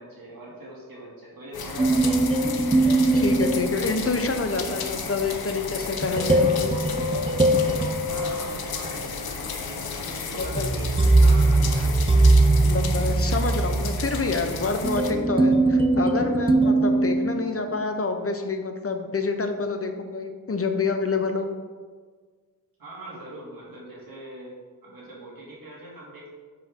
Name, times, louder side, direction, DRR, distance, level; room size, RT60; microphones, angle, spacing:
voice 1, 0.0-2.4 8.1-12.1 22.8-24.5 24.8-26.3, right 1 dB, 70° right, -4 dB, 2.4 m, -41 dB
sound 1, 1.5-15.1, left 5 dB, 85° left, 0.8 m, -34 dB
sound 2, 1.8-4.4 6.0-9.0 10.4-17.8, right 2 dB, 15° right, 0.5 m, -21 dB
voice 2, 3.1-6.7 10.3-10.8 12.6-21.5, left 3 dB, 40° left, 6 dB, 0.7 m, -27 dB
7.5 x 6.2 x 3.6 m, 1.5 s
wide cardioid pair, 80°, 36 cm